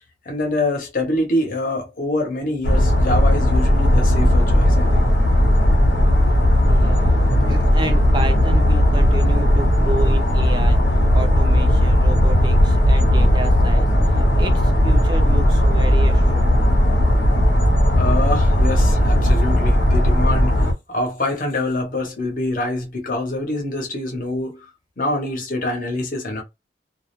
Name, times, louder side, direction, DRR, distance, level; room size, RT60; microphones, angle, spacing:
voice 1, 0.3-5.0 17.9-24.7 25.0-26.4, left 1 dB, 45° left, 0.8 m, -25 dB
sound 1, 2.6-20.7, equal, 80° left, 0.8 m, -16 dB
voice 2, 6.6-16.6, right 2 dB, 25° right, 0.4 m, -31 dB
2.3 x 2.1 x 2.9 m
head